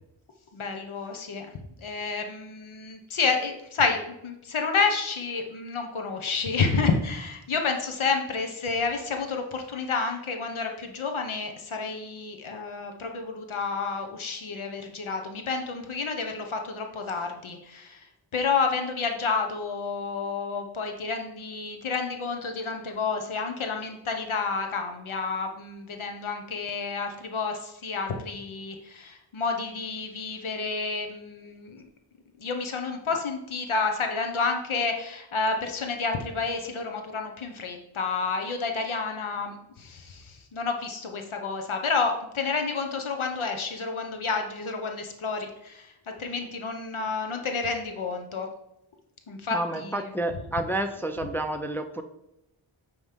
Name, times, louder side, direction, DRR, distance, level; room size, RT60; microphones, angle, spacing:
voice 1, 0.5-1.5 1.8-18.1 18.3-31.8 32.4-45.9 46.2-48.5 49.3-50.1, left 4 dB, 75° left, 4 dB, 0.9 m, -30 dB
voice 2, 49.5-52.0, right 1 dB, 5° left, 6 dB, 0.4 m, -30 dB
8.8 x 3.1 x 5.0 m, 0.84 s
wide cardioid pair, 95°, 49 cm